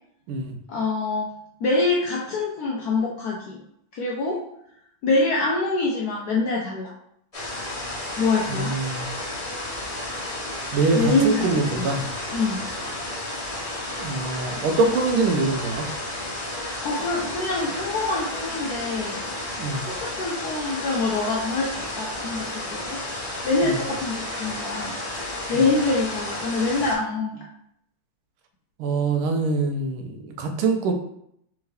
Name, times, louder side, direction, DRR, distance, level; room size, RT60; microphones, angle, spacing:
voice 1, 0.7-1.3 1.6-3.6 3.9-4.4 5.0-6.9 8.2-8.8 10.9-11.9 12.3-12.6 16.8-19.2 19.7-23.0 23.4-24.9 25.5-27.4, left 3 dB, 70° left, -3 dB, 0.9 m, -25 dB
sound 1, 7.3-26.9, left 1 dB, 35° left, 0.5 m, -32 dB
voice 2, 8.5-9.1 10.7-12.0 14.0-15.9 19.6-19.9 23.6-23.7 28.8-30.9, right 3 dB, 85° right, 4 dB, 1.5 m, -24 dB
3.6 x 3.6 x 3.3 m, 0.73 s
omnidirectional pair, 2.3 m